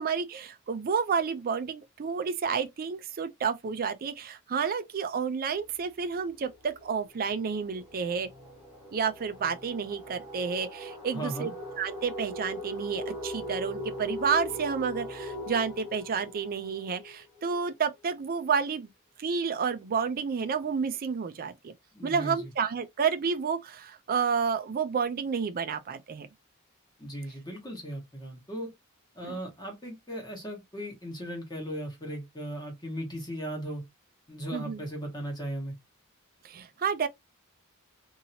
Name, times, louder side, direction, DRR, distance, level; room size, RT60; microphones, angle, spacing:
voice 1, 0.0-8.3 8.9-11.5 11.8-18.9 19.2-21.7 22.0-26.3 29.2-29.3 34.5-34.8 36.4-37.1, right 6 dB, 45° right, 0.4 m, -30 dB
sound 1, 5.6-5.8 6.1-17.7, equal, 10° right, 1.1 m, -40 dB
voice 2, 11.1-11.5 21.9-22.5 27.0-28.7 29.1-33.8 34.3-35.8, equal, 20° left, 1.4 m, -37 dB
2.8 x 2.8 x 2.7 m
head